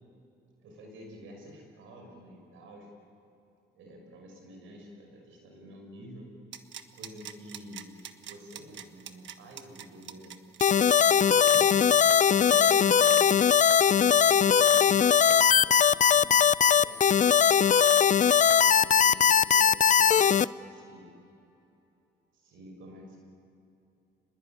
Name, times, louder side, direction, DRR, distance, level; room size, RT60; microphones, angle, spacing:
voice 1, 0.6-2.9 3.7-6.3 6.9-7.9 8.2-10.3 11.0-11.6 12.3-13.1 13.9-21.1 22.3-23.2, equal, 85° right, 2 dB, 6.1 m, -49 dB
sound 1, 6.5-14.0 14.3-14.4, right 9 dB, 70° right, 1.5 m, -46 dB
sound 2, 10.6-20.5, left 8 dB, 40° left, 0.6 m, -20 dB
voice 2, 11.5-13.2, equal, 30° right, 3 dB, 7.0 m, -46 dB
30.0 x 21.0 x 9.3 m, 2.7 s
cardioid pair, 90°, 20 cm